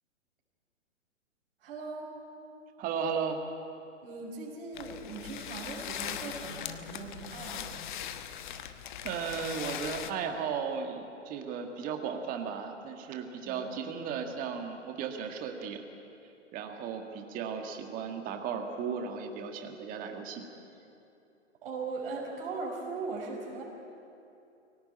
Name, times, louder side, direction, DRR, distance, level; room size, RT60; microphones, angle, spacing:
voice 1, 1.6-2.1 4.0-7.9 13.4-13.7 21.6-23.6, right 3 dB, 50° right, -3 dB, 5.3 m, -39 dB
voice 2, 2.8-3.4 9.0-15.8 16.5-20.4, right 6 dB, 20° right, 4 dB, 1.9 m, -35 dB
sound 1, 4.7-10.1, left 10 dB, 40° left, 1.2 m, -40 dB
24.0 x 17.5 x 8.9 m, 2.7 s
figure-of-eight pair, 120°, 37 cm